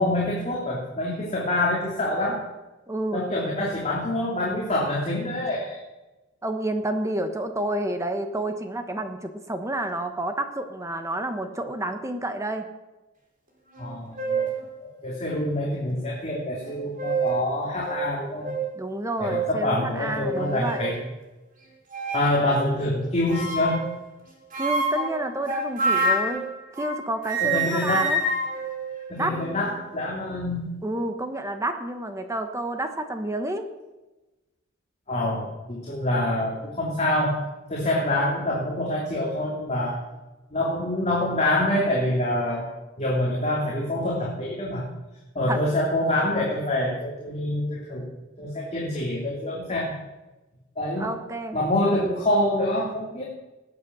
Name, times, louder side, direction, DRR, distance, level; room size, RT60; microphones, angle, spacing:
voice 1, 0.0-2.4 3.1-5.8 13.8-14.5 14.8-18.5 19.2-21.0 22.1-23.8 27.4-28.1 29.1-30.7 35.1-37.4 37.7-40.0 40.5-42.7 43.0-44.8 45.3-48.1 48.4-49.9 50.8-51.1 51.5-53.2, left 1 dB, 35° left, -4 dB, 3.0 m, -26 dB
voice 2, 2.9-3.3 6.4-12.7 18.7-20.8 24.6-26.4 26.8-28.2 29.2-29.4 30.8-33.7 45.5-45.6 51.0-51.6, right 1 dB, 15° right, 7 dB, 1.1 m, -29 dB
sound 1, 13.7-13.9 14.2-14.6 15.3-15.4 16.7-17.4 17.8-18.0 18.4-18.6 19.2-19.5 20.2-20.9 21.9-22.4 23.3-23.9 24.5-27.0 27.2-29.6, right 2 dB, 45° right, 3.5 m, -27 dB
19.5 x 8.2 x 6.2 m, 1.1 s
head